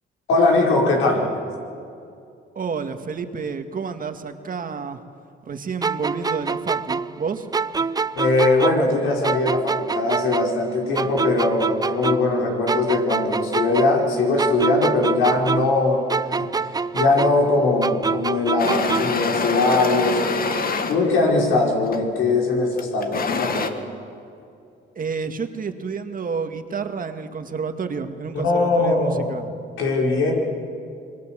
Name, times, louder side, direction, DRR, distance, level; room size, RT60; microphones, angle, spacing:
voice 1, 0.3-1.3 8.1-16.0 16.3-16.5 16.9-20.3 20.9-23.7 28.4-29.3 29.8-30.3, left 2 dB, 90° left, -1 dB, 5.1 m, -20 dB
voice 2, 2.6-5.0 5.5-7.5 25.0-29.4, right 5 dB, 45° right, 7 dB, 1.9 m, -30 dB
sound 1, 5.8-9.0 9.2-12.4 12.7-15.8 16.1-19.2, right 4 dB, 20° right, 0.5 m, -26 dB
sound 2, 18.6-21.0 21.9-22.1 22.8-23.7, left 4 dB, 45° left, 1.8 m, -25 dB
26.5 x 22.0 x 7.6 m, 2.5 s
cardioid pair, 90°, 20 cm